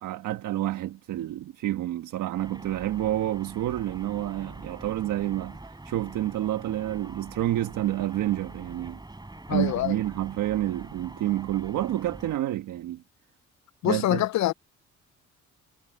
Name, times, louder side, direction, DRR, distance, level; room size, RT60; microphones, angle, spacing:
voice 1, 0.0-9.0 9.5-13.0 13.8-14.2, right 14 dB, 85° right, 1.4 m, -29 dB
sound 1, 2.4-12.4, right 2 dB, 15° right, 5.8 m, -44 dB
voice 2, 9.5-9.9 13.8-14.5, left 14 dB, 65° left, 0.6 m, -25 dB
cardioid pair, 90°, 30 cm